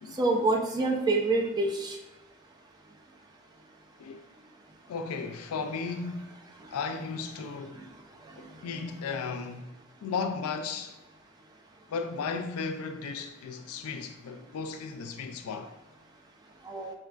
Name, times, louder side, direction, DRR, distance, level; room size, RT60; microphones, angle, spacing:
voice 1, 0.2-2.0 16.6-16.9, right 2 dB, 20° right, 0.3 m, -26 dB
voice 2, 4.9-6.3 6.7-7.8 8.4-9.7 10.0-10.9 11.9-15.7, left 5 dB, 85° left, 0.3 m, -35 dB
4.4 x 2.3 x 2.4 m
head